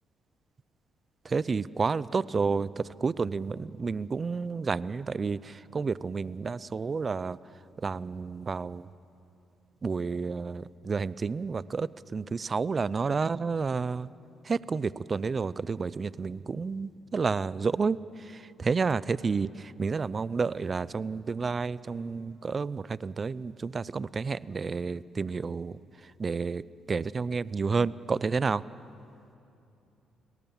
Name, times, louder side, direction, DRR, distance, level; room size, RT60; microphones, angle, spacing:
voice 1, 1.3-2.7 3.0-5.4 5.7-7.4 7.8-8.8 9.8-14.1 14.5-18.0 18.6-19.5 19.8-25.7 26.2-26.6 26.9-28.6, right 4 dB, 35° right, 19 dB, 0.5 m, -30 dB
30.0 x 18.5 x 7.3 m, 2.7 s
cardioid pair, 90°, 0 cm